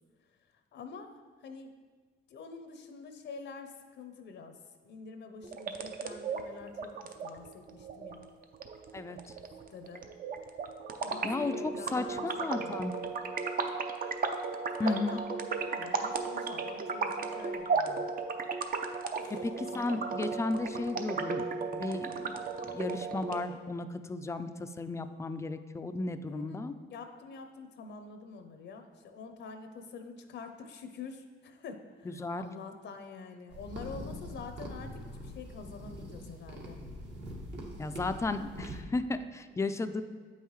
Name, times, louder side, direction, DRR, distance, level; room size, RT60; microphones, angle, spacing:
voice 1, 0.7-1.1 1.4-1.7 2.3-4.6 4.8-8.3 9.7-10.0 11.0-12.2 12.5-12.8 14.8-15.2 15.5-18.0 19.2-19.4 19.7-20.0 26.3-36.8 39.5-39.6, left 4 dB, 65° left, 7 dB, 0.6 m, -46 dB
sound 1, 5.4-23.4, right 4 dB, 45° right, 0.6 m, -35 dB
voice 2, 11.2-12.9 14.8-15.2 19.3-21.4 21.7-26.7 32.1-32.4 37.8-40.0, left 3 dB, 15° left, 10 dB, 0.3 m, -34 dB
sound 2, 33.5-38.8, equal, 60° right, 1.4 m, -43 dB
8.1 x 5.6 x 3.1 m, 1.5 s
cardioid pair, 90°, 20 cm